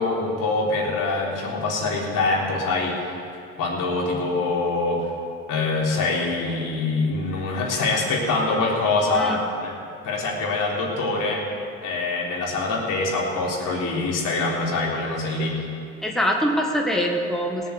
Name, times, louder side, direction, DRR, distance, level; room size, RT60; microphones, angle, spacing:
voice 1, 0.0-3.0 3.6-5.0 5.5-9.8 10.0-11.4 11.8-15.6, left 3 dB, 65° left, -3 dB, 3.7 m, -24 dB
voice 2, 16.0-17.7, equal, ahead, 0 dB, 1.7 m, -23 dB
18.0 x 7.6 x 8.2 m, 2.5 s
supercardioid pair, 90°, 34 cm